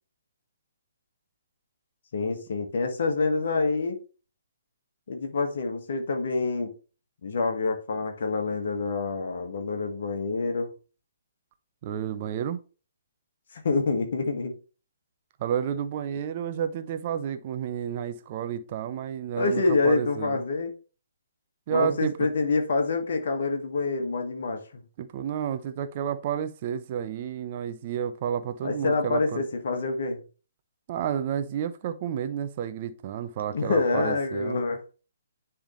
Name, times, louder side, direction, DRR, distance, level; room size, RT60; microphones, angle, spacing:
voice 1, 2.1-4.0 5.1-6.7 7.2-10.7 13.5-14.5 19.4-20.7 21.7-24.8 28.6-30.2 33.5-34.8, left 3 dB, 55° left, 1.4 m, -27 dB
voice 2, 11.8-12.6 15.4-20.4 21.7-22.3 25.0-29.4 30.9-34.6, right 9 dB, 35° right, 0.7 m, -31 dB
10.0 x 3.6 x 3.1 m
figure-of-eight pair, 130°, 0 cm